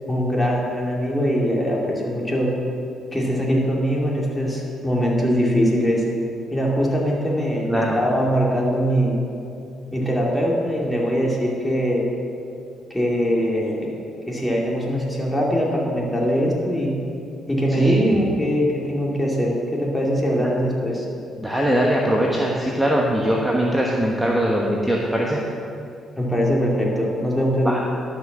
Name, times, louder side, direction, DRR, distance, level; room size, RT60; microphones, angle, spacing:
voice 1, 0.1-2.5 3.1-6.0 6.5-9.2 9.9-12.0 12.9-13.9 14.3-16.9 17.5-21.1 26.2-27.7, equal, 10° left, -4 dB, 2.6 m, -22 dB
voice 2, 21.4-25.4 27.6-27.8, equal, 5° right, -2 dB, 1.1 m, -21 dB
12.0 x 6.0 x 6.1 m, 2.6 s
cardioid pair, 90°, 0 cm